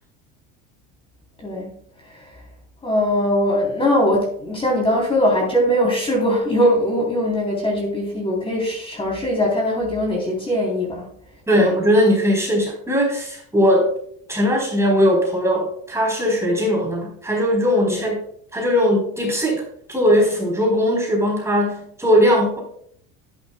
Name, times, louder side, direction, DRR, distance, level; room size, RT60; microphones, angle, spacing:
voice 1, 2.8-11.1 11.5-11.7 17.8-18.0, equal, 15° left, -2 dB, 3.6 m, -21 dB
voice 2, 11.5-13.9 14.3-18.2 18.5-19.6 19.9-22.6, equal, 10° right, -1 dB, 4.2 m, -19 dB
11.0 x 11.0 x 2.3 m, 0.64 s
supercardioid pair, 125°, 31 cm